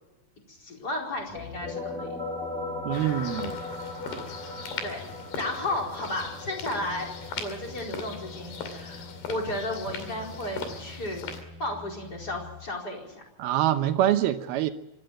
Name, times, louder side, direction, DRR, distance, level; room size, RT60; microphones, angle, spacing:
voice 1, 0.5-2.1 4.8-5.0 5.3-7.1 7.4-11.3 11.6-13.1, left 1 dB, 25° left, 0 dB, 5.0 m, -33 dB
sound 1, 1.1-12.7 13.1-13.2, left 3 dB, 65° left, 8.0 m, -47 dB
sound 2, 1.3-10.7, left 2 dB, ahead, 5.4 m, -39 dB
voice 2, 2.8-3.6 13.4-14.7, right 12 dB, 80° right, 9 dB, 2.9 m, -25 dB
sound 3, 2.9-11.4, left 5 dB, 80° left, 4.4 m, -39 dB
25.0 x 13.0 x 9.0 m, 1.0 s
omnidirectional pair, 4.5 m